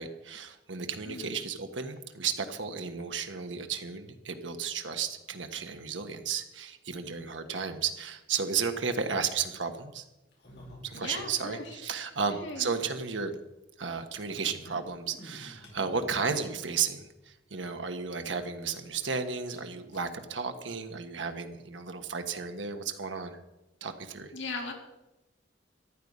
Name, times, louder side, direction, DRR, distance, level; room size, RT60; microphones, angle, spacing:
voice 1, 0.0-10.0 10.8-13.4 13.8-23.4 23.8-24.3, right 5 dB, 85° right, 7 dB, 1.3 m, -33 dB
voice 2, 1.1-1.4 10.9-11.8 12.3-12.7 24.3-24.7, left 3 dB, 85° left, 1 dB, 2.9 m, -38 dB
sound 1, 10.2-11.7 12.0-12.1 12.2-12.3 13.4-13.5 14.3-16.6 17.2-17.3 17.7-17.8 18.2-19.1 19.5-19.6 19.9-20.0 20.8-20.9, left 1 dB, 65° left, 5.3 m, -50 dB
14.5 x 11.5 x 5.4 m, 0.97 s
head